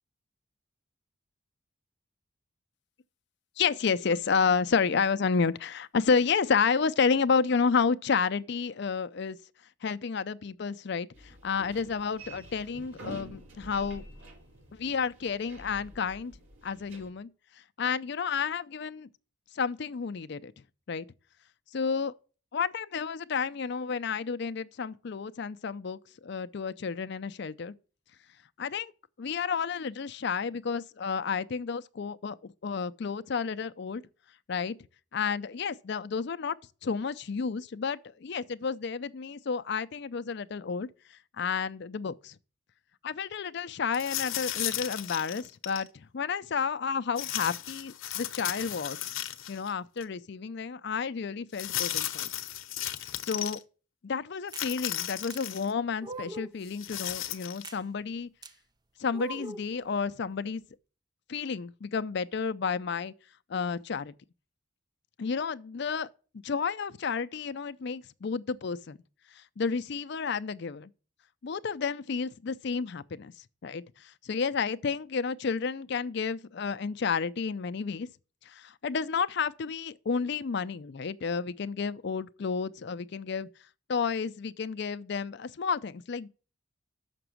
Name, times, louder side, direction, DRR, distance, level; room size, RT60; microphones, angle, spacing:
voice 1, 3.6-9.4 9.8-14.0 14.7-16.3 16.6-17.3 17.8-19.1 19.5-20.5 20.9-21.1 21.7-22.1 22.5-27.7 28.6-28.9 29.2-34.0 34.5-34.7 35.1-36.6 36.8-42.4 43.0-49.0 49.5-52.3 53.2-53.6 54.0-58.3 59.0-60.6 61.3-63.1 63.5-64.1 65.2-66.1 66.3-69.0 69.3-70.9 71.4-73.3 73.6-78.1 78.4-83.5 83.9-86.3, left 5 dB, 55° left, 0.4 m, -31 dB
sound 1, 11.1-17.1, right 1 dB, 75° right, 2.2 m, -48 dB
sound 2, 43.9-45.9 47.2-49.7 50.0-50.1 51.5-53.6 54.5-55.7 56.7-57.7, left 12 dB, 80° left, 0.8 m, -35 dB
sound 3, 54.5-54.7 55.3-55.4 56.0-56.6 57.6-57.8 58.4-58.5 59.1-59.7, right 2 dB, 20° right, 0.4 m, -41 dB
6.9 x 6.0 x 7.6 m
head